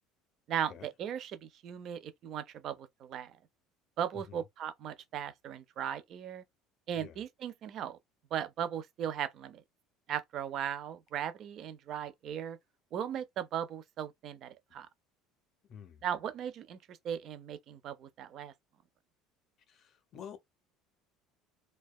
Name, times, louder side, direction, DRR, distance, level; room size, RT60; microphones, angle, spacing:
voice 1, 0.5-3.3 4.0-6.4 6.9-8.0 8.3-9.6 10.1-12.6 12.9-14.9 16.0-18.5, right 9 dB, 35° right, 0.3 m, -37 dB
voice 2, 15.6-16.0 19.7-20.4, left 8 dB, 30° left, 0.4 m, -49 dB
2.7 x 2.2 x 2.2 m
cardioid pair, 175°, 0 cm